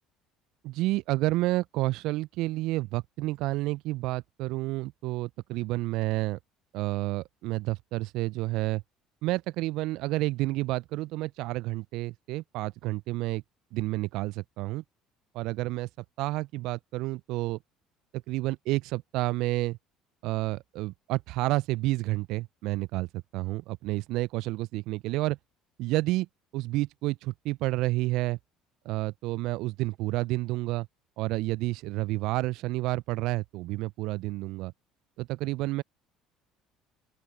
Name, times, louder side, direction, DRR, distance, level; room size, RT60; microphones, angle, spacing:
voice 1, 0.6-6.4 6.7-8.8 9.2-13.4 13.7-14.8 15.3-17.6 18.1-19.8 20.2-25.4 25.8-26.3 26.5-28.4 28.8-30.9 31.2-34.7 35.2-35.8, right 19 dB, 65° right, 0.6 m, -30 dB
open air
hypercardioid pair, 60°, 0 cm